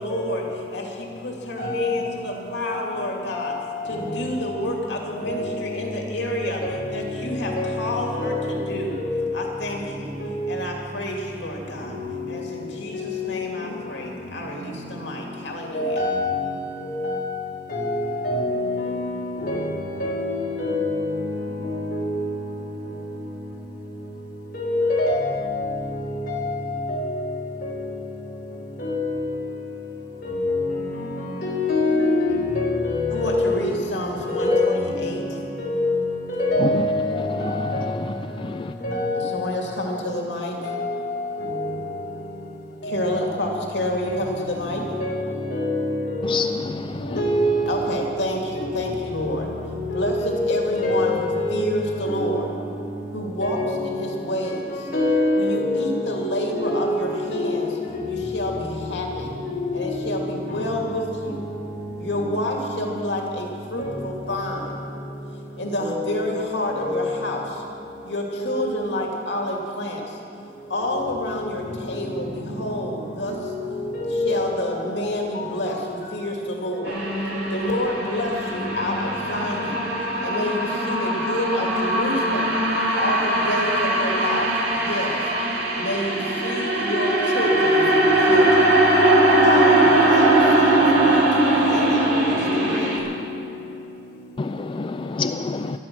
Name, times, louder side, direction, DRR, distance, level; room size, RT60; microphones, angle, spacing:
voice 1, 0.0-3.5 3.9-6.6 6.9-9.0 9.3-10.1 10.5-12.0 12.3-16.0 33.1-35.4 39.1-40.6 42.8-44.9 47.7-49.5 49.9-52.5 53.1-54.9 55.4-57.7 58.1-59.4 59.7-61.5 62.0-64.8 65.6-67.6 68.1-70.2 70.7-73.5 74.1-77.0 77.5-79.8 80.2-82.6 82.9-85.3 85.8-87.9 88.2-88.8 89.4-92.9, left 1 dB, 80° left, 2.3 m, -29 dB
voice 2, 1.6-1.9 3.3-3.5 3.9-4.1 5.2-5.4 6.6-6.9 7.6-7.9 8.1-8.5 8.9-9.1 10.2-10.3 13.0-13.1 15.7-16.4 16.8-17.2 17.7-18.9 19.4-19.7 20.0-21.1 21.9-22.1 24.5-25.5 26.3-26.6 26.9-27.2 27.6-27.7 28.8-29.2 30.2-30.6 31.4-33.4 34.3-34.8 35.6-35.9 36.2-37.9 38.8-39.3 40.6-41.0 41.4-41.6 42.8-43.0 44.1-44.2 45.0-46.3 47.1-47.7 48.6-48.7 50.2-50.5 50.8-51.6 52.0-52.2 53.4-53.8 54.9-55.7 56.6-56.9 57.9-58.1 63.8-63.9 65.8-66.0 66.7-66.9 73.9-74.4 87.9-88.3, left 2 dB, 55° left, 3.9 m, -24 dB
voice 3, 46.2-47.0 94.4-95.8, left 4 dB, 30° left, 0.4 m, -28 dB
sound 1, 76.9-93.0, right 1 dB, 65° right, 3.4 m, -20 dB
16.0 x 12.5 x 6.1 m
head